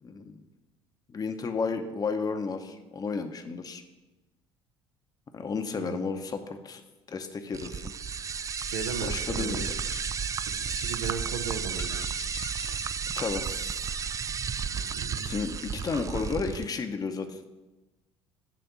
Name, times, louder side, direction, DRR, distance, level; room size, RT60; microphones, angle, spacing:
voice 1, 0.0-0.4 1.1-3.8 5.3-6.8 7.1-7.9 9.0-9.7 13.2-13.6 15.2-17.4, left 5 dB, 30° left, 7 dB, 0.8 m, -32 dB
voice 2, 5.7-6.1 8.6-9.7 10.5-12.0 14.7-15.4, right 5 dB, 75° right, 7 dB, 0.8 m, -37 dB
sound 1, 7.5-16.6, right 6 dB, 25° right, 0.3 m, -33 dB
sound 2, 8.5-9.2 9.5-10.3 10.6-11.3 11.8-13.1, left 7 dB, 90° left, 0.4 m, -46 dB
10.0 x 3.4 x 7.0 m, 1.1 s
hypercardioid pair, 60°, 13 cm